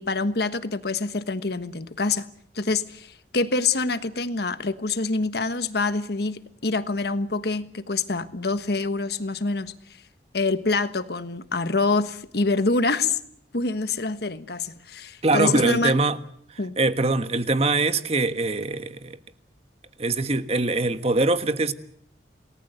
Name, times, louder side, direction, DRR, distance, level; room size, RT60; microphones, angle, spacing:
voice 1, 0.0-2.3 2.5-9.7 10.3-13.2 13.5-16.0 16.6-16.7, left 3 dB, 60° left, 1.4 m, -26 dB
voice 2, 15.2-16.2 16.8-19.2 20.0-21.7, right 2 dB, 35° right, 1.4 m, -23 dB
28.5 x 19.0 x 8.1 m
head